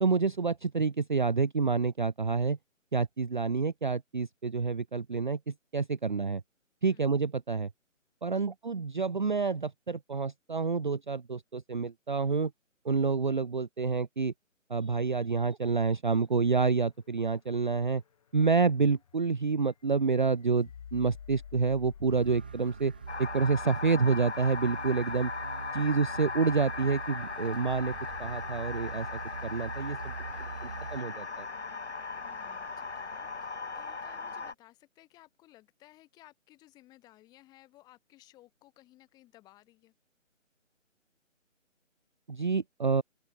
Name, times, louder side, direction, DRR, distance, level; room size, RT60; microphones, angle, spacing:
voice 1, 0.0-2.6 2.9-6.4 6.8-7.7 8.2-12.5 12.8-14.3 14.7-18.0 18.3-22.9 23.2-25.3 25.7-27.9 28.2-30.1 30.6-31.5 42.3-43.0, right 4 dB, 35° right, 0.7 m, -28 dB
sound 1, 16.2-33.8, left 8 dB, 25° left, 2.1 m, -54 dB
sound 2, 22.1-31.0, right 5 dB, 5° right, 0.8 m, -43 dB
sound 3, 23.1-34.5, left 4 dB, 55° left, 4.9 m, -38 dB
voice 2, 25.8-26.1 32.1-39.9, left 16 dB, 10° left, 4.7 m, -59 dB
open air
figure-of-eight pair, 155°, 40 cm